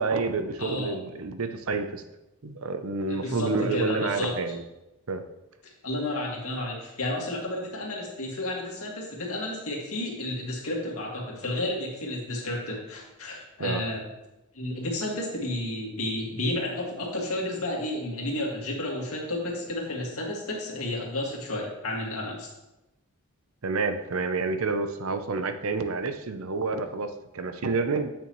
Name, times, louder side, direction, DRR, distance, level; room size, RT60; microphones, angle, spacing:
voice 1, 0.0-2.0 2.4-4.6 5.1-5.2 13.6-13.8 23.6-28.1, right 3 dB, 70° right, 8 dB, 0.7 m, -29 dB
voice 2, 0.6-0.9 3.1-4.3 5.8-14.0 14.5-22.5, left 1 dB, 75° left, -2 dB, 2.2 m, -31 dB
8.6 x 6.9 x 3.1 m, 0.96 s
head